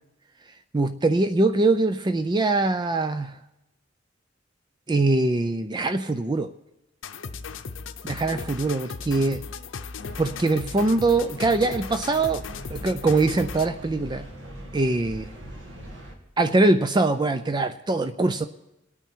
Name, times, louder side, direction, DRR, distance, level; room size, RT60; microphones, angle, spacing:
voice 1, 0.7-3.4 4.9-6.5 8.1-9.4 10.2-12.4 12.7-14.3 14.7-15.3 16.4-18.4, right 2 dB, 25° right, 10 dB, 0.4 m, -23 dB
sound 1, 7.0-13.8, left 5 dB, 90° left, 0.7 m, -37 dB
sound 2, 10.0-16.1, equal, 70° right, 2.0 m, -41 dB
27.5 x 9.1 x 4.5 m, 0.94 s
head